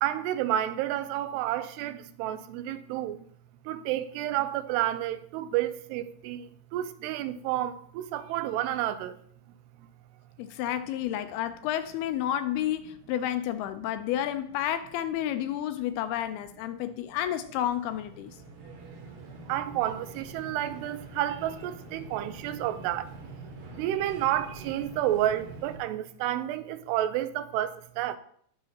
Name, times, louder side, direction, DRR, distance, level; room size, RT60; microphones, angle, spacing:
voice 1, 0.0-3.2 3.7-6.5 6.7-9.1 19.5-23.1 23.8-28.2, right 13 dB, 85° right, 2.7 m, -30 dB
voice 2, 10.4-18.4, left 11 dB, 80° left, 2.4 m, -31 dB
sound 1, 17.1-25.8, right 2 dB, 65° right, 3.9 m, -45 dB
19.0 x 6.6 x 2.9 m
omnidirectional pair, 4.8 m